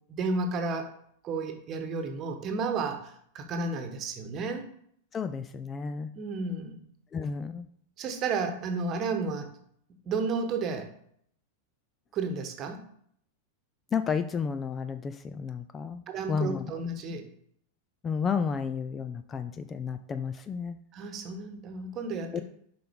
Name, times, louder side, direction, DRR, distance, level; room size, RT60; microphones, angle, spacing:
voice 1, 0.1-0.9 1.2-4.7 6.1-6.8 8.0-9.5 10.1-10.9 12.1-12.8 16.1-17.3 20.9-22.4, right 4 dB, 35° right, 6 dB, 1.1 m, -32 dB
voice 2, 5.1-6.1 7.1-7.7 13.9-16.0 16.3-16.7 17.1-17.2 18.0-20.8 22.3-22.4, left 6 dB, 20° left, 11 dB, 0.3 m, -32 dB
7.5 x 5.5 x 3.6 m, 0.66 s
figure-of-eight pair, 90°, 0 cm